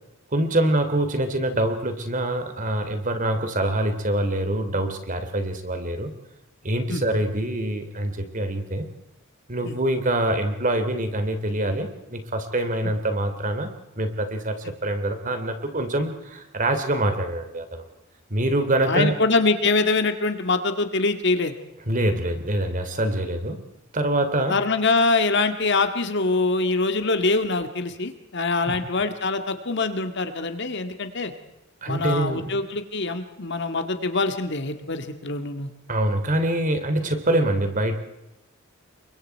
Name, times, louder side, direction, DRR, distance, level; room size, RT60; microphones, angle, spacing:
voice 1, 0.3-6.1 6.6-8.9 9.5-17.8 18.3-19.1 21.9-23.6 23.9-24.6 28.7-28.8 31.8-32.5 35.9-38.0, right 1 dB, 40° right, 7 dB, 3.0 m, -25 dB
voice 2, 18.9-21.5 24.5-31.3 31.9-35.7, left 3 dB, 60° left, 8 dB, 1.9 m, -24 dB
29.5 x 23.5 x 4.6 m, 0.91 s
head